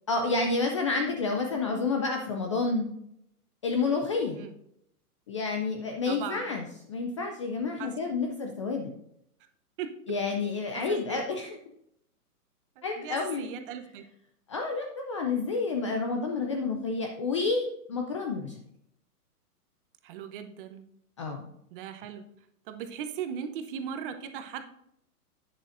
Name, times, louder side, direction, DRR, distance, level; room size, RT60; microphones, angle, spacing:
voice 1, 0.1-2.9 3.6-4.4 5.3-8.9 10.1-11.5 12.8-13.5 14.5-18.5 21.2-21.5, left 4 dB, 20° left, 3 dB, 0.4 m, -29 dB
voice 2, 6.1-6.5 7.8-7.9 9.8-10.2 10.7-11.2 12.8-14.0 20.0-20.8 21.7-22.2 22.7-24.7, right 8 dB, 35° right, 7 dB, 0.9 m, -38 dB
11.0 x 9.0 x 2.5 m, 0.74 s
hypercardioid pair, 135°, 46 cm